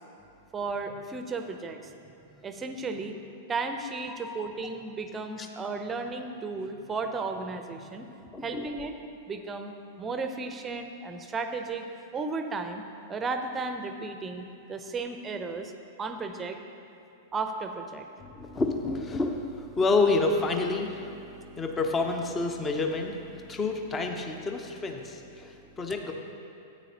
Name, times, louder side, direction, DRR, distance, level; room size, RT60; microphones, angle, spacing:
voice 1, 0.5-1.9 2.3-3.2 3.5-8.1 8.4-9.0 9.3-11.8 12.1-12.8 13.1-15.7 16.0-16.6 17.3-18.1 25.4-25.5, right 4 dB, 15° right, 7 dB, 0.7 m, -34 dB
voice 2, 4.1-4.4 5.4-5.5 8.3-8.7 18.2-26.1, left 3 dB, 20° left, 4 dB, 0.8 m, -29 dB
13.0 x 9.0 x 2.9 m, 2.9 s
figure-of-eight pair, 95°, 0 cm